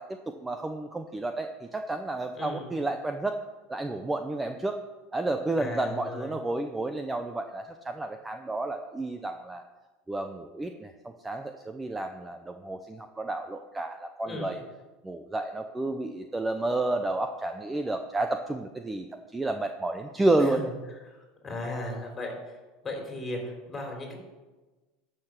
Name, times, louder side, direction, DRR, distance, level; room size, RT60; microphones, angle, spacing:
voice 1, 0.0-3.4 3.7-4.8 5.1-9.6 10.1-10.9 11.2-14.6 15.0-19.1 19.3-20.7, right 2 dB, 10° right, 6 dB, 0.6 m, -31 dB
voice 2, 2.3-2.7 5.6-6.3 14.2-14.6 20.5-20.6 21.1-21.2 21.4-22.3 22.8-24.1, left 1 dB, 15° left, 1 dB, 3.5 m, -36 dB
12.5 x 6.8 x 5.9 m, 1.2 s
supercardioid pair, 140°, 0 cm